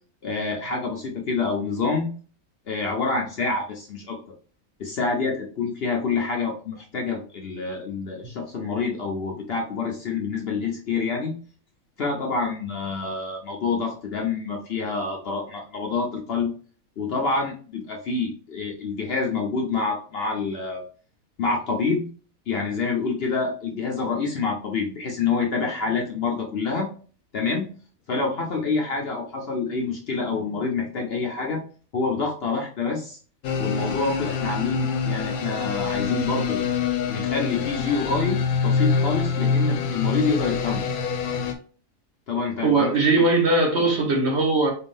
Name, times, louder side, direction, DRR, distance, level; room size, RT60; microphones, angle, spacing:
voice 1, 0.2-2.1 2.7-4.2 4.8-11.3 12.0-16.5 17.0-20.8 21.4-22.0 22.5-26.9 27.3-27.7 28.1-31.6 31.9-33.2 33.6-36.6 37.1-40.8 42.3-43.2, left 4 dB, 55° left, 0.8 m, -27 dB
sound 1, 33.4-41.5, left 5 dB, 90° left, 1.1 m, -25 dB
voice 2, 42.6-44.7, right 3 dB, 55° right, 1.3 m, -20 dB
4.3 x 3.6 x 2.5 m
omnidirectional pair, 1.5 m